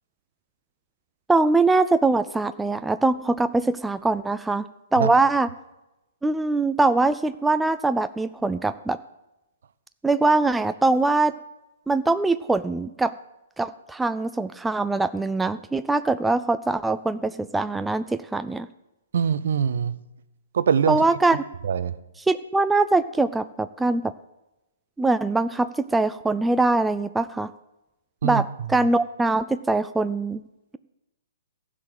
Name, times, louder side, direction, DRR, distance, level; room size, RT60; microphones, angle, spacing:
voice 1, 1.3-4.6 4.9-5.5 6.2-9.0 10.0-11.3 11.9-13.1 13.6-18.7 20.9-21.4 22.3-24.1 25.0-27.5 28.2-28.4 28.7-30.4, right 3 dB, 5° right, 0.3 m, -22 dB
voice 2, 19.1-20.0 20.5-21.0 21.6-22.0 28.2-28.7, right 7 dB, 65° right, 0.6 m, -23 dB
15.0 x 5.0 x 7.5 m
figure-of-eight pair, 125°, 0 cm